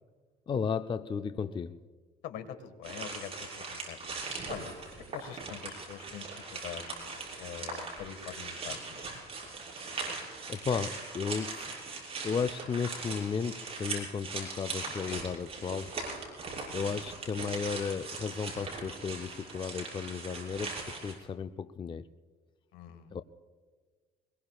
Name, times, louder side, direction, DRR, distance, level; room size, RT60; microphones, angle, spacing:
voice 1, 0.5-1.8 10.5-11.7 12.2-16.0 16.7-22.1 23.1-23.2, left 6 dB, 30° left, 10 dB, 0.5 m, -34 dB
voice 2, 2.2-4.0 4.5-4.7 5.1-6.3 6.5-7.1 7.4-9.0 15.1-15.2 16.6-16.8 22.7-23.1, left 9 dB, 85° left, 9 dB, 1.6 m, -44 dB
sound 1, 2.8-21.1, right 3 dB, 35° right, 6.3 m, -40 dB
24.5 x 21.5 x 2.4 m, 1.5 s
cardioid pair, 110°, 17 cm